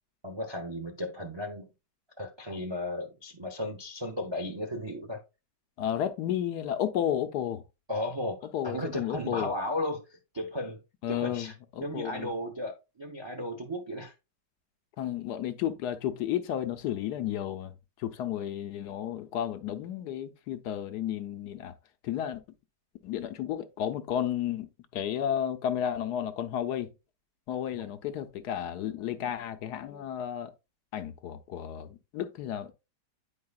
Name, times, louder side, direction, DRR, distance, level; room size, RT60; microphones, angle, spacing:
voice 1, 0.2-1.7 2.2-5.2 7.9-10.8 11.1-11.5 11.8-14.1 27.7-27.9, left 1 dB, 45° right, 0.3 m, -35 dB
voice 2, 5.8-7.6 8.5-9.5 11.0-12.3 15.0-17.7 18.0-21.7 22.0-22.4 23.0-24.7 24.9-26.9 27.5-30.5 30.9-32.7, left 10 dB, 75° left, 1.2 m, -32 dB
9.4 x 4.7 x 2.3 m
omnidirectional pair, 1.9 m